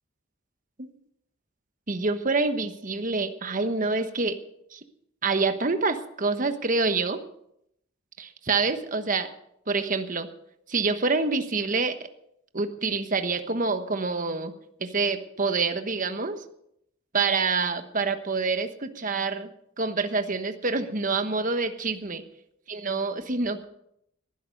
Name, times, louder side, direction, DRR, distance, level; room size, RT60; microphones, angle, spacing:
voice 1, 1.9-4.4 4.7-4.8 5.2-7.2 8.2-9.3 9.7-10.3 10.7-12.0 12.5-14.5 14.8-16.4 17.1-19.5 19.8-22.2 22.7-23.6, right 4 dB, 40° right, 9 dB, 1.2 m, -26 dB
19.0 x 11.0 x 5.3 m, 0.75 s
head